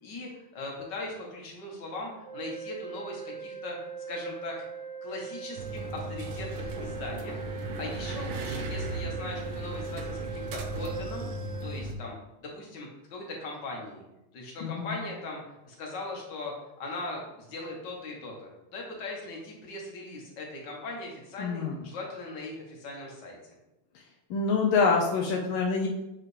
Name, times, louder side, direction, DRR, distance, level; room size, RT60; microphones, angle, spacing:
voice 1, 0.0-3.8 4.1-4.7 5.0-7.4 7.8-11.3 11.6-14.0 14.3-23.5, left 2 dB, 60° left, -1 dB, 1.9 m, -39 dB
sound 1, 2.2-11.9, right 5 dB, 35° left, 1.2 m, -41 dB
sound 2, 5.6-12.0, right 2 dB, 80° right, 1.5 m, -36 dB
voice 2, 14.6-14.9 21.4-21.7 24.3-25.9, left 4 dB, 80° left, 0 dB, 1.5 m, -26 dB
7.1 x 4.9 x 3.3 m, 0.95 s
omnidirectional pair, 2.3 m